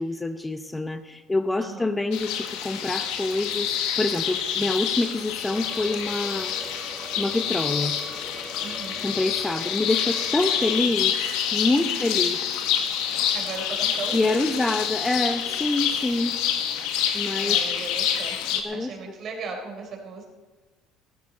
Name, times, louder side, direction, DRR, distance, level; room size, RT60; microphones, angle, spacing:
voice 1, 0.0-6.5 7.2-7.9 9.0-11.1 11.5-12.4 14.1-16.4 17.1-17.6 18.6-18.9, left 2 dB, 15° left, 9 dB, 0.8 m, -26 dB
voice 2, 1.6-1.9 8.6-9.0 11.8-12.5 13.1-14.6 17.4-20.3, right 4 dB, 50° right, 1 dB, 4.0 m, -38 dB
sound 1, 2.1-18.6, left 9 dB, 75° left, 1.3 m, -27 dB
sound 2, 5.4-10.8, right 1 dB, 5° right, 1.5 m, -42 dB
15.0 x 13.5 x 4.2 m, 1.3 s
supercardioid pair, 75°, 0 cm